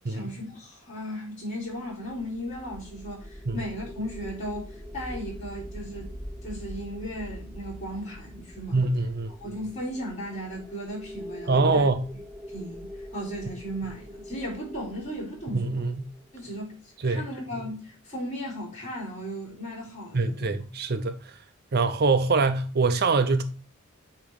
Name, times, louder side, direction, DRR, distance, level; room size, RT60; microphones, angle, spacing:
voice 1, 0.0-6.1 6.4-8.8 9.4-11.9 12.5-15.8 16.3-20.5, equal, 35° left, 3.5 m, -36 dB
sound 1, 1.7-16.9, equal, ahead, 0.8 m, -43 dB
voice 2, 8.7-9.3 11.5-12.1 15.5-16.1 17.0-17.3 20.1-21.4 21.7-23.4, right 3 dB, 50° right, 0.6 m, -24 dB
8.3 x 3.0 x 5.1 m
head